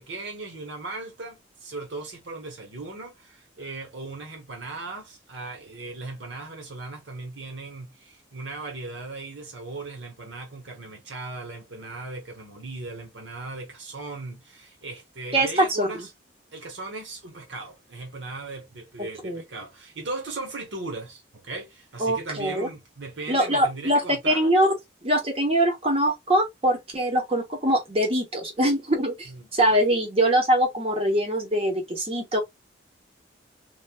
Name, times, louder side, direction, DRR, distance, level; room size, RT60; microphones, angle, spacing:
voice 1, 0.0-16.1 16.5-24.5 29.3-29.5, right 3 dB, 75° right, 1.2 m, -38 dB
voice 2, 15.3-15.9 19.2-19.4 22.0-22.7 23.3-24.7 25.0-32.4, right 1 dB, 30° right, 1.0 m, -23 dB
3.2 x 2.4 x 2.3 m
head